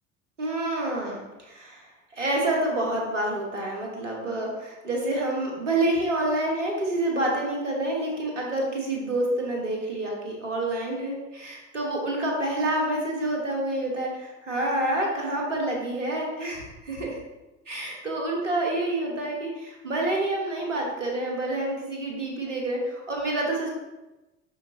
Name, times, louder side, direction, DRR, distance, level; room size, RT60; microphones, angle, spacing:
voice 1, 0.4-1.9 2.1-17.2 17.7-23.7, right 1 dB, 80° right, -1 dB, 1.3 m, -28 dB
6.9 x 5.7 x 2.8 m, 1.0 s
figure-of-eight pair, 65°, 37 cm